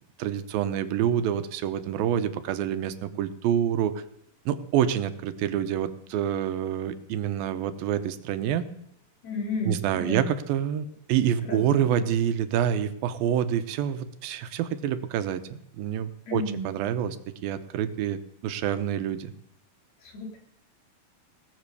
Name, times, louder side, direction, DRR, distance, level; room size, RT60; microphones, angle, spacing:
voice 1, 0.2-3.9 4.5-8.7 9.7-17.2 17.4-19.3, right 9 dB, 80° right, 11 dB, 2.6 m, -27 dB
voice 2, 9.2-10.3 11.5-11.6 16.3-16.6 20.0-20.4, left 2 dB, 45° left, 1 dB, 4.5 m, -32 dB
19.0 x 8.0 x 6.8 m, 0.75 s
omnidirectional pair, 4.3 m